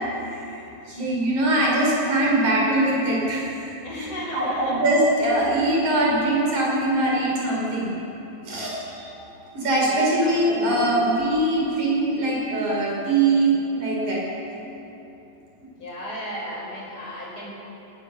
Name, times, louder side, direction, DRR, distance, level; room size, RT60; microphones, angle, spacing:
voice 1, 0.9-3.4 3.9-4.1 4.3-8.0 8.4-9.1 9.5-14.2, right 1 dB, 55° right, -4 dB, 6.7 m, -22 dB
voice 2, 3.8-4.8 9.8-11.0 15.8-17.5, equal, 35° left, -2 dB, 5.5 m, -35 dB
20.0 x 19.0 x 7.0 m, 2.9 s
omnidirectional pair, 4.2 m